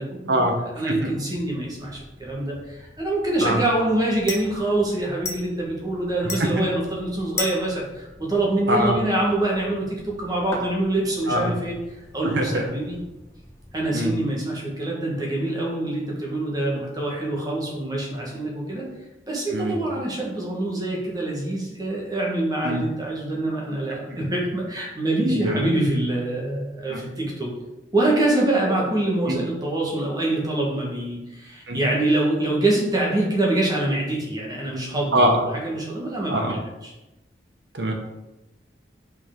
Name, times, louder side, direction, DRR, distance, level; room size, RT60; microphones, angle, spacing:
voice 1, 0.0-13.0 13.7-18.9 19.3-27.5 27.9-35.2 35.5-36.9, right 1 dB, 20° right, -3 dB, 1.4 m, -25 dB
voice 2, 0.8-1.2 3.4-3.6 6.4-6.5 8.7-9.0 11.3-11.5 12.2-12.6 13.9-14.2 19.5-19.8 22.6-22.8 25.3-25.7 26.9-27.0 29.3-29.4 31.7-31.8 35.1-35.5 36.3-36.5 37.7-37.9, right 1 dB, 70° right, 3 dB, 1.0 m, -23 dB
sound 1, 1.3-14.1, left 2 dB, 15° left, 0.8 m, -40 dB
5.5 x 4.7 x 3.7 m, 1.0 s
head